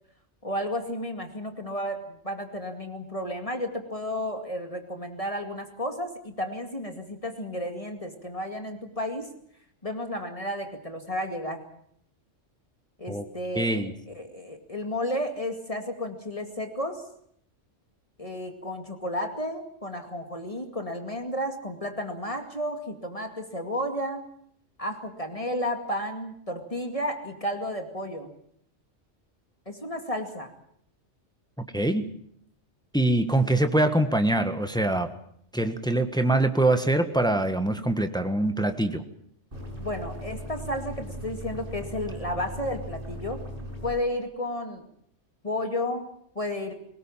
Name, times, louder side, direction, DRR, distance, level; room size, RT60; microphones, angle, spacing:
voice 1, 0.4-9.3 9.8-11.6 13.0-17.0 18.2-24.3 24.8-28.3 29.7-30.5 39.8-43.4 43.8-44.8 45.4-46.7, left 1 dB, 30° left, 5 dB, 2.4 m, -32 dB
voice 2, 13.5-13.9 31.7-32.1 32.9-35.1 35.5-39.0, right 1 dB, 5° left, 8 dB, 1.5 m, -24 dB
sound 1, 39.5-43.9, equal, 45° right, 6.2 m, -38 dB
22.5 x 19.5 x 7.5 m, 0.68 s
omnidirectional pair, 1.3 m